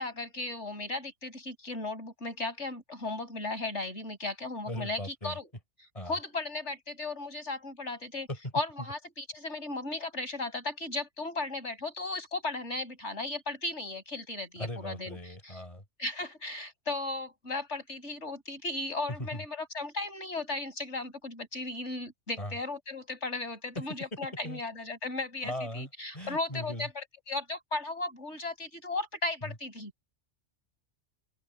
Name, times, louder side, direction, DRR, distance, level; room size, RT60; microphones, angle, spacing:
voice 1, 0.0-5.5 6.0-8.3 8.5-15.6 16.0-29.9, left 2 dB, 80° left, 7.0 m, -36 dB
voice 2, 4.7-5.4 5.9-6.2 8.3-8.4 14.6-15.8 19.2-19.4 22.4-22.5 23.8-24.0 24.4-24.6 25.4-25.9 26.1-26.9 29.4-29.5, left 1 dB, 30° left, 5.2 m, -38 dB
open air
omnidirectional pair, 1.2 m